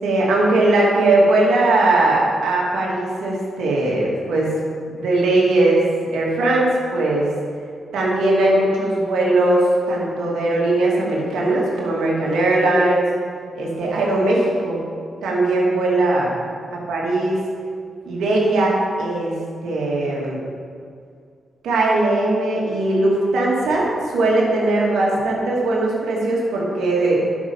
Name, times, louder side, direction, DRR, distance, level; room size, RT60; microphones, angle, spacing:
voice 1, 0.0-4.5 4.9-5.8 6.1-7.3 7.9-13.1 13.5-14.8 15.2-16.3 16.7-17.4 18.1-20.4 21.6-27.2, right 2 dB, 85° right, -3 dB, 2.4 m, -19 dB
11.0 x 6.4 x 5.5 m, 2.2 s
supercardioid pair, 55°, 0 cm